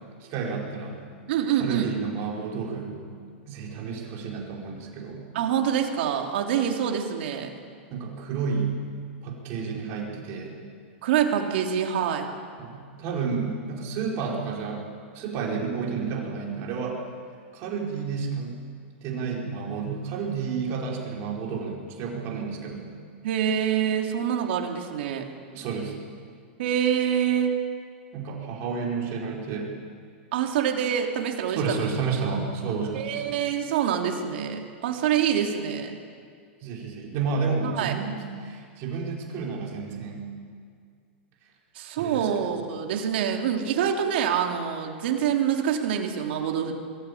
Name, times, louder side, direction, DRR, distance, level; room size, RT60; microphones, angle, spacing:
voice 1, 0.2-1.0 1.5-3.0 3.5-5.2 7.9-8.8 9.2-10.6 12.6-14.8 15.1-16.9 17.5-18.6 19.0-22.8 25.5-25.9 28.1-29.7 31.5-33.4 36.6-38.2 38.4-40.3 42.0-42.4, right 5 dB, 40° right, -2 dB, 5.0 m, -31 dB
voice 2, 1.3-1.9 5.3-7.5 11.0-12.3 23.2-25.3 26.6-27.6 30.3-31.6 32.9-35.9 37.8-37.9 41.7-46.7, right 8 dB, 65° right, 2 dB, 3.1 m, -25 dB
22.5 x 14.0 x 8.7 m, 2.1 s
hypercardioid pair, 140°, 6 cm